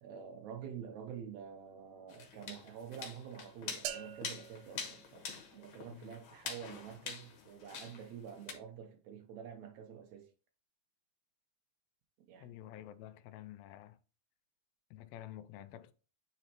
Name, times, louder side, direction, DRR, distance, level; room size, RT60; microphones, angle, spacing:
voice 1, 0.0-10.3 12.3-12.5, right 8 dB, 70° right, 1.8 m, -48 dB
sound 1, 2.1-8.5, left 6 dB, 65° left, 2.4 m, -46 dB
sound 2, 3.8-5.8, right 10 dB, 90° right, 1.7 m, -46 dB
voice 2, 12.4-14.0 14.9-15.9, left 12 dB, 80° left, 2.1 m, -50 dB
9.7 x 4.2 x 2.9 m
omnidirectional pair, 4.3 m